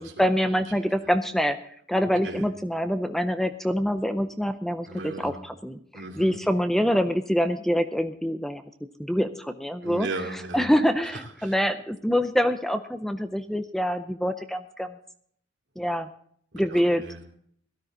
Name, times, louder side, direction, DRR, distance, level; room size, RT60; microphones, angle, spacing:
voice 1, 0.0-1.6 1.9-8.6 9.0-10.1 10.5-15.0 15.8-16.1 16.5-17.0, equal, ahead, 9 dB, 0.5 m, -25 dB
voice 2, 4.9-5.4 5.9-6.4 9.8-10.7 11.0-11.5 16.5-17.2, right 2 dB, 70° right, 2 dB, 2.7 m, -37 dB
17.5 x 12.5 x 3.9 m, 0.64 s
head